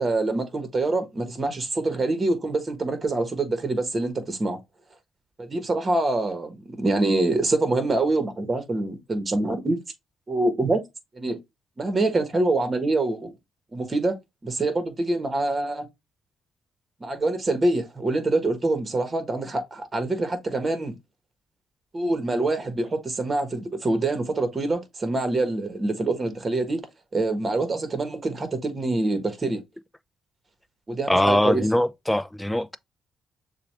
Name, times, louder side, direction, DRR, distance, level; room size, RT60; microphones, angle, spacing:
voice 1, 0.0-4.6 5.4-9.8 10.3-10.8 11.1-11.4 11.8-13.3 13.7-14.2 14.4-15.9 17.0-20.9 21.9-26.8 27.1-29.6 30.9-31.6, right 2 dB, 30° right, 1.3 m, -25 dB
voice 2, 31.1-32.8, left 1 dB, 5° left, 0.4 m, -22 dB
6.7 x 2.4 x 3.3 m
cardioid pair, 90°, 0 cm